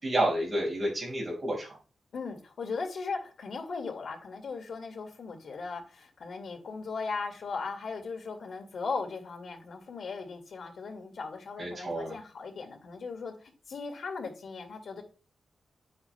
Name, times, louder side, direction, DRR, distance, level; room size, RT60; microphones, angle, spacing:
voice 1, 0.0-1.8 11.6-12.2, right 1 dB, 30° right, -4 dB, 5.1 m, -30 dB
voice 2, 2.1-15.0, left 4 dB, 70° left, 3 dB, 2.0 m, -38 dB
9.7 x 8.7 x 2.2 m, 0.35 s
wide cardioid pair, 170°, 0 cm